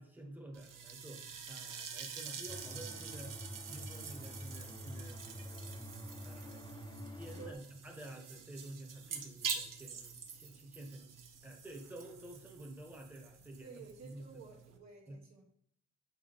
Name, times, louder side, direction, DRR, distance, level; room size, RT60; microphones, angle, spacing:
voice 1, 0.0-3.4 3.7-5.8 6.2-6.7 7.1-11.1 11.4-14.3 15.1-15.2, right 1 dB, 5° right, 1 dB, 0.9 m, -51 dB
sound 1, 0.5-14.8, right 6 dB, 80° right, 0.9 m, -46 dB
sound 2, 2.5-7.5, equal, 15° left, 0.6 m, -47 dB
voice 2, 7.3-7.7 13.6-15.4, right 6 dB, 60° right, 0 dB, 1.2 m, -52 dB
7.1 x 4.5 x 3.8 m, 0.66 s
wide cardioid pair, 180°, 32 cm